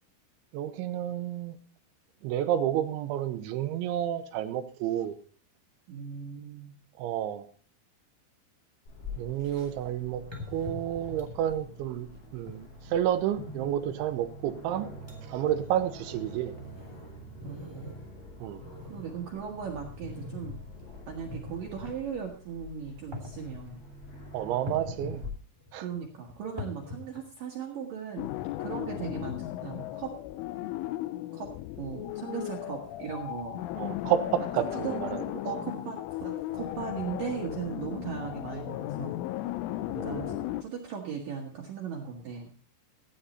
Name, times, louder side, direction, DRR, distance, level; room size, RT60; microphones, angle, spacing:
voice 1, 0.5-1.6 2.2-5.2 7.0-7.5 9.2-10.2 10.5-12.1 12.3-14.9 15.2-16.5 18.4-18.6 24.3-25.2 25.7-25.9 33.8-35.2 40.0-40.5, right 11 dB, 85° right, 10 dB, 3.2 m, -30 dB
voice 2, 5.9-6.8 16.1-16.5 17.4-18.0 18.8-20.6 21.1-23.9 25.8-28.3 28.6-30.2 31.3-33.6 34.7-35.0 35.4-39.2 40.0-42.5, right 7 dB, 60° right, 0 dB, 2.6 m, -38 dB
Aircraft, 8.9-25.3, left 1 dB, 65° left, 9.1 m, -46 dB
sound 1, 10.3-11.5 12.5-12.6 13.4-14.0 14.6-14.7 15.1-15.2 15.5-15.8 16.3-18.1 18.4-19.2 20.0-20.5 21.1-21.9 22.9-23.7 24.7-25.2 25.6-27.4, left 2 dB, 10° right, 1.2 m, -42 dB
sound 2, 28.2-40.6, left 15 dB, 85° left, 3.2 m, -36 dB
15.5 x 9.7 x 4.2 m, 0.40 s
omnidirectional pair, 5.5 m